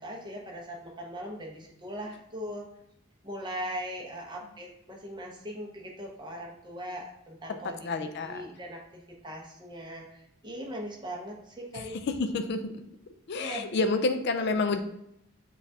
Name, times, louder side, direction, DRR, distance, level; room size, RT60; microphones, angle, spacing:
voice 1, 0.0-2.6 3.2-7.9 8.2-12.0 13.3-13.7 14.4-14.5, equal, 20° right, -1 dB, 0.8 m, -40 dB
voice 2, 7.5-8.5 11.7-12.7 13.3-14.8, left 3 dB, 50° left, 7 dB, 0.4 m, -29 dB
7.1 x 2.4 x 2.7 m, 0.78 s
head